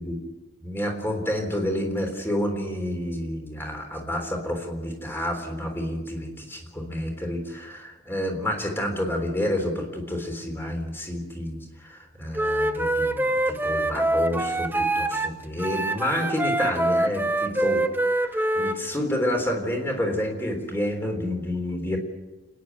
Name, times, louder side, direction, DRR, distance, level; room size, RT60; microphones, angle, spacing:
voice 1, 0.6-22.0, left 1 dB, 10° left, 3 dB, 3.6 m, -29 dB
Wind instrument woodwind instrument, 12.3-15.3 15.6-18.8, right 1 dB, 10° right, 0.7 m, -25 dB
29.0 x 10.5 x 9.3 m, 1.2 s
head